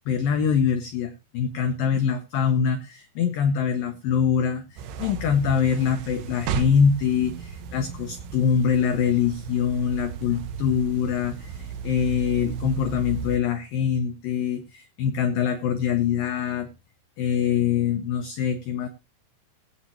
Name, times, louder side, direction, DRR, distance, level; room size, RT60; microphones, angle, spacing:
voice 1, 0.1-16.7 17.2-18.9, left 7 dB, 80° left, 7 dB, 2.1 m, -24 dB
sound 1, 4.8-13.4, right 6 dB, 75° right, 2.8 m, -35 dB
20.0 x 8.5 x 2.9 m, 0.26 s
omnidirectional pair, 5.2 m